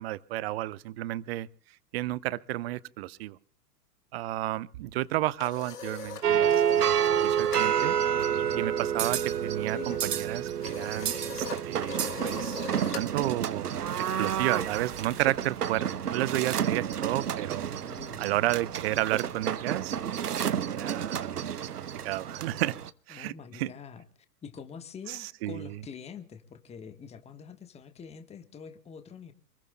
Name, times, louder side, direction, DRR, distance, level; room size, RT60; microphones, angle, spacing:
voice 1, 0.0-1.5 1.9-3.4 4.1-13.7 14.2-17.7 18.2-20.0 20.7-21.4 22.0-22.7 23.1-23.7 25.1-25.7, right 16 dB, 40° right, 21 dB, 0.7 m, -32 dB
sound 1, 5.0-7.7 8.0-8.3 8.5-15.2, left 5 dB, 75° left, 2.0 m, -42 dB
sound 2, 6.2-22.9, right 9 dB, 75° right, 0.9 m, -29 dB
voice 2, 17.8-18.3 23.1-24.0 24.4-29.3, left 6 dB, 15° left, 10 dB, 1.3 m, -45 dB
28.0 x 21.0 x 2.2 m, 0.39 s
figure-of-eight pair, 100°, 47 cm